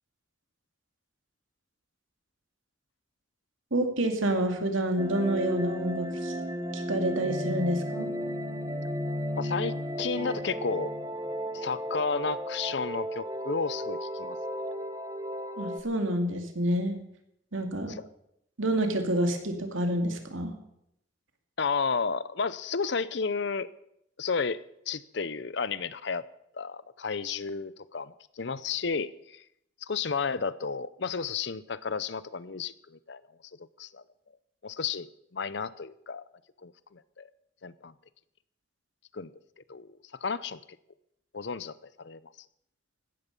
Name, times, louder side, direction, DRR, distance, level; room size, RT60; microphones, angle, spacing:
voice 1, 3.7-6.3 6.7-8.1 15.6-17.0 17.5-17.9 18.6-20.5, right 1 dB, 80° right, 5 dB, 2.4 m, -28 dB
sound 1, 5.0-15.8, equal, 20° right, 0.9 m, -34 dB
voice 2, 9.4-10.9 11.5-14.4 17.9-18.1 21.6-23.7 24.2-26.2 26.5-29.4 29.8-33.2 33.6-34.0 34.6-36.2 36.6-37.3 37.6-37.9 39.1-39.3 39.7-40.6 41.3-42.3, left 5 dB, 60° left, 17 dB, 0.6 m, -32 dB
16.5 x 13.0 x 5.4 m, 0.77 s
head